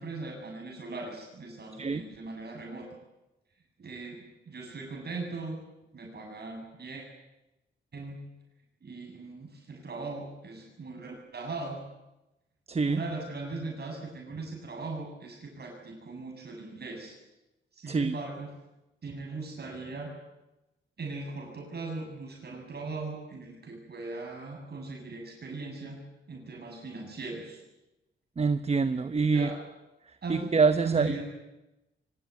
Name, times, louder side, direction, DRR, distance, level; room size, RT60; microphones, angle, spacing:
voice 1, 0.0-3.0 3.8-5.6 5.9-7.0 7.9-8.3 8.8-11.9 12.8-17.2 17.7-18.5 19.0-20.1 21.0-27.6 29.3-29.6 30.2-30.5 30.8-31.2, right 3 dB, 50° right, 1 dB, 7.1 m, -39 dB
voice 2, 12.7-13.0 17.9-18.1 28.4-29.5 30.3-31.1, right 4 dB, 30° right, 11 dB, 1.0 m, -25 dB
24.0 x 19.0 x 9.6 m, 0.96 s
cardioid pair, 95°, 21 cm